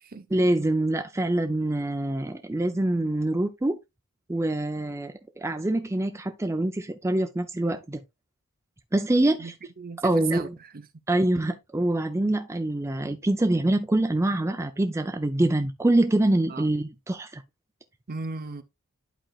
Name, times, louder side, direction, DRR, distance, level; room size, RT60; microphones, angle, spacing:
voice 1, 0.3-3.8 4.3-8.0 8.9-9.5 10.0-10.5 11.1-17.4, right 1 dB, 15° right, 0.5 m, -25 dB
voice 2, 9.4-10.9 16.5-16.7 18.1-18.6, right 4 dB, 45° right, 0.7 m, -37 dB
11.5 x 4.4 x 2.4 m
head